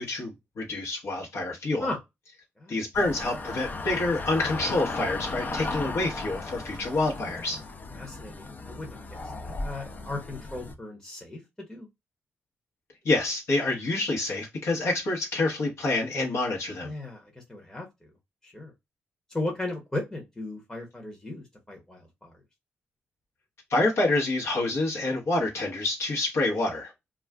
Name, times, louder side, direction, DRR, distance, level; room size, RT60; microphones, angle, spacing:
voice 1, 0.0-1.9 2.7-7.6 13.0-16.9 23.7-26.9, left 2 dB, 70° left, 1.0 m, -27 dB
sound 1, 2.9-10.7, left 3 dB, 40° left, 0.5 m, -36 dB
voice 2, 7.9-11.9 16.8-18.1 18.4-18.7 19.3-22.3, left 2 dB, 15° left, 0.9 m, -36 dB
2.3 x 2.2 x 3.4 m
cardioid pair, 70°, 5 cm